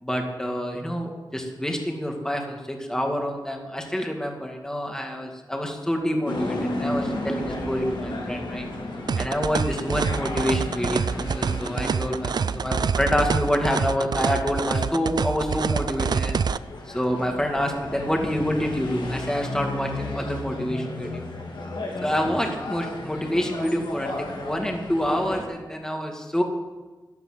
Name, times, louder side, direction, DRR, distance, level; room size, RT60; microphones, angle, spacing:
voice 1, 0.0-8.7 9.2-16.4 16.9-21.3 22.0-26.4, equal, 5° left, 2 dB, 2.2 m, -27 dB
sound 1, 6.2-25.4, left 1 dB, 80° left, 3.0 m, -34 dB
sound 2, 9.1-16.6, right 6 dB, 60° right, 0.4 m, -26 dB
12.0 x 11.5 x 7.9 m, 1.3 s
wide cardioid pair, 135°, 8 cm